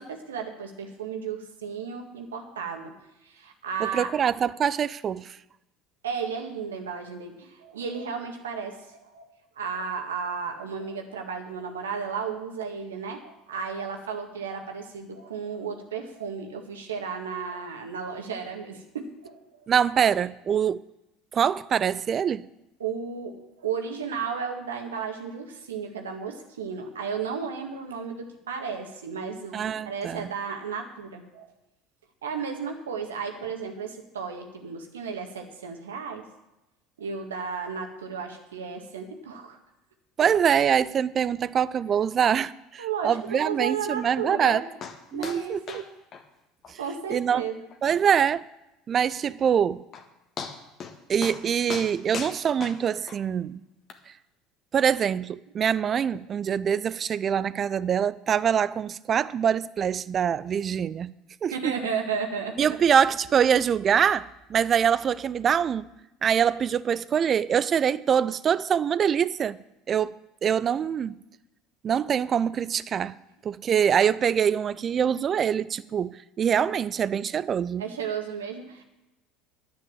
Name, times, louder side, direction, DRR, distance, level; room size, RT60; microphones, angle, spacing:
voice 1, 0.0-2.9 3.2-4.1 6.0-19.7 22.8-31.5 32.2-36.3 37.0-39.6 42.8-44.6 45.1-45.8 46.8-47.7 61.5-62.8 77.8-78.8, right 6 dB, 80° right, 1.8 m, -34 dB
voice 2, 3.8-5.4 19.7-20.8 21.3-22.5 29.5-30.3 40.2-44.6 45.1-45.6 46.7-46.8 47.1-47.4 47.8-48.4 48.9-49.8 51.1-53.6 54.7-61.1 61.4-61.7 62.6-65.9 66.2-69.6 69.9-70.1 70.4-71.2 71.8-73.1 73.4-77.8, right 8 dB, 40° right, 0.5 m, -24 dB
sound 1, 44.8-45.0 45.2-45.4 45.7-45.9 46.1-46.2 46.6-46.7 47.1-47.2 47.7-47.8 49.5-49.6 49.9-50.1 50.4-50.9 51.2-51.4 51.7-53.2 53.9-54.0, left 6 dB, 45° left, 1.6 m, -37 dB
10.5 x 9.7 x 7.3 m
hypercardioid pair, 70°, 0 cm